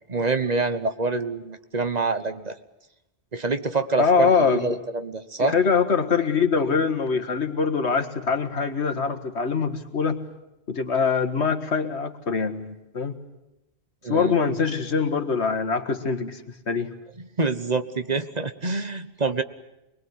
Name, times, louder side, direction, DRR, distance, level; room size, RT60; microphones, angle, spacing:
voice 1, 0.1-2.6 3.3-5.6 14.0-14.3 17.2-19.4, right 3 dB, 40° right, 10 dB, 1.2 m, -26 dB
voice 2, 4.0-4.7 5.4-10.2 10.7-13.2 14.1-16.4 16.7-16.9, left 5 dB, 85° left, 7 dB, 2.0 m, -23 dB
25.5 x 21.0 x 9.5 m, 0.93 s
omnidirectional pair, 1.1 m